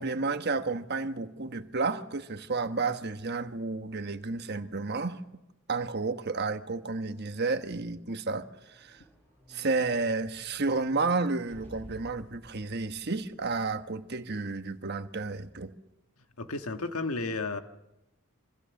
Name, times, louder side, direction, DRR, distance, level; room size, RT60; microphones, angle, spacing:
voice 1, 0.0-5.2 5.7-9.0 9.5-15.7, right 3 dB, 50° right, 1.3 m, -31 dB
sound 1, 8.1-14.1 14.5-14.6, equal, 10° left, 6.6 m, -54 dB
voice 2, 16.4-17.6, left 3 dB, 80° left, 1.6 m, -32 dB
26.0 x 25.5 x 7.1 m
head